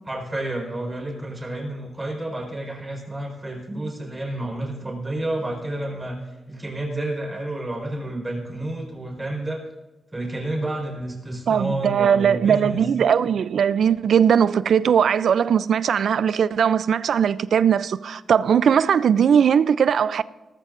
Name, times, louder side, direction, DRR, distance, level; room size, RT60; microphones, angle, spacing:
voice 1, 0.1-9.6 10.1-12.8, right 1 dB, 15° right, 4.5 m, -30 dB
voice 2, 11.5-20.2, right 8 dB, 70° right, 0.4 m, -19 dB
19.0 x 13.5 x 2.6 m
cardioid pair, 110°, 0 cm